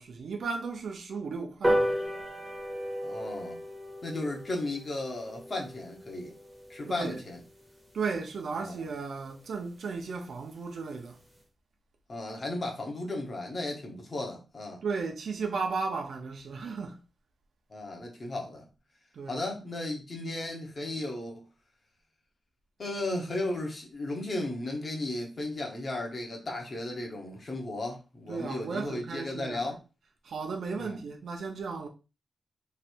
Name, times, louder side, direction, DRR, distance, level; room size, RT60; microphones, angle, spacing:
voice 1, 0.0-2.0 6.9-7.2 7.9-11.2 14.8-17.0 19.1-19.5 28.3-29.6 30.2-31.9, right 4 dB, 70° right, 0.7 m, -35 dB
sound 1, 1.6-8.4 8.8-8.9 9.2-9.3 9.6-9.7 10.0-10.1 10.4-10.7 11.1-11.2, equal, 15° right, 0.8 m, -34 dB
voice 2, 3.0-3.6 4.0-6.3 6.7-7.4 8.5-8.9 12.1-14.8 17.7-18.7 19.3-21.4 22.8-29.8 30.8-31.0, left 2 dB, 35° left, 1.0 m, -35 dB
3.3 x 2.5 x 4.4 m
wide cardioid pair, 180°, 0 cm